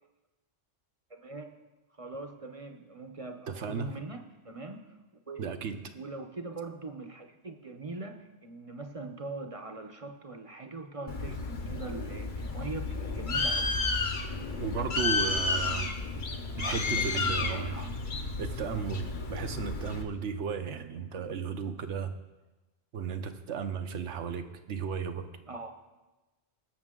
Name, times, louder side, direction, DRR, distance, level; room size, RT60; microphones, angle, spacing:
voice 1, 1.1-1.5 2.0-4.9 5.3-5.5 5.9-13.8 16.7-17.2 17.5-17.9 25.5-25.7, right 3 dB, 35° right, 5 dB, 0.8 m, -42 dB
voice 2, 3.5-4.0 5.4-5.8 14.6-15.9 16.6-17.7 18.4-22.2 22.9-25.3, right 6 dB, 80° right, 8 dB, 1.1 m, -34 dB
Bird, 11.1-20.0, left 3 dB, 45° left, 1.0 m, -32 dB
20.0 x 7.1 x 3.7 m, 1.1 s
omnidirectional pair, 1.2 m